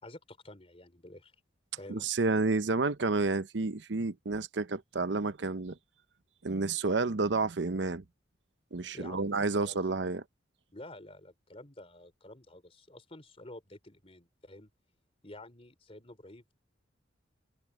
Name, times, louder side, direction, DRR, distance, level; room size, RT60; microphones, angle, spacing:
voice 1, 0.0-1.3 1.8-2.0 8.9-10.0 10.7-14.7 15.2-16.5, left 1 dB, 30° left, 3.8 m, -50 dB
voice 2, 1.9-5.8 6.4-8.0 8.7-10.2, right 3 dB, 70° right, 0.8 m, -30 dB
head